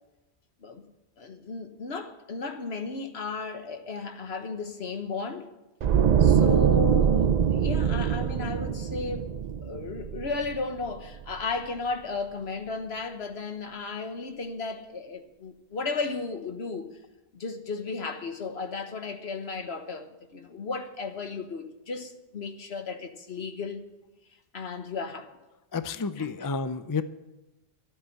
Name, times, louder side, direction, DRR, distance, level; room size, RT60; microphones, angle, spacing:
voice 1, 1.2-5.5 6.2-9.3 9.6-17.0 17.4-23.8 24.5-25.3 26.2-26.5, left 4 dB, 65° left, 1.4 m, -34 dB
sound 1, 5.8-10.9 11.2-11.4, right 8 dB, 50° right, 0.5 m, -23 dB
voice 2, 25.7-27.0, left 4 dB, 35° left, 0.3 m, -30 dB
13.0 x 8.1 x 8.7 m
omnidirectional pair, 1.2 m